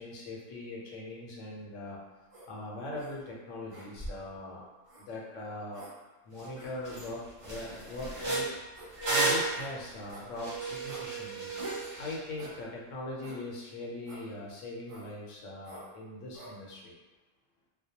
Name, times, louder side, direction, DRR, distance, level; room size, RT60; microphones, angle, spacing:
voice 1, 0.0-2.0 2.5-4.6 5.0-5.8 6.2-8.5 8.7-11.5 12.0-16.9, left 1 dB, 80° left, -3 dB, 1.0 m, -41 dB
sound 1, 2.3-2.5 3.0-3.1 3.7-4.3 4.9-5.1 5.7-5.9 6.6-6.7 7.4-7.5 8.2-8.3 8.7-8.9 9.5-9.7 10.1-10.3 10.9-11.1 11.6-11.9 12.4-12.6 13.2-13.4 14.1-14.3 14.9-15.1 15.6-15.9 16.3-16.5, right 1 dB, 60° right, 0.3 m, -46 dB
sound 2, 6.4-6.5 6.9-7.1 7.4-12.2, right 3 dB, 40° right, 0.8 m, -33 dB
2.3 x 2.1 x 2.7 m, 1.2 s
omnidirectional pair, 1.3 m